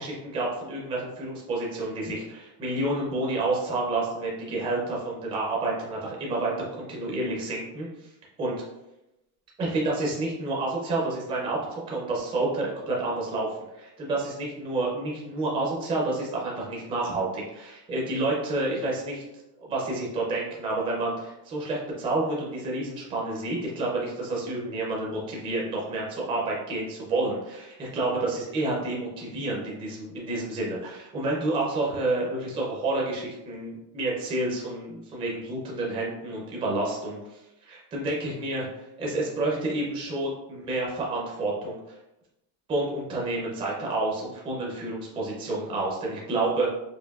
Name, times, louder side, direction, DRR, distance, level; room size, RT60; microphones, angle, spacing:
voice 1, 0.0-7.9 8.4-8.5 9.6-19.2 19.7-37.4 37.7-41.8 42.7-46.7, right 2 dB, 10° right, -4 dB, 0.4 m, -29 dB
4.5 x 2.5 x 2.3 m, 0.93 s
cardioid pair, 155°, 49 cm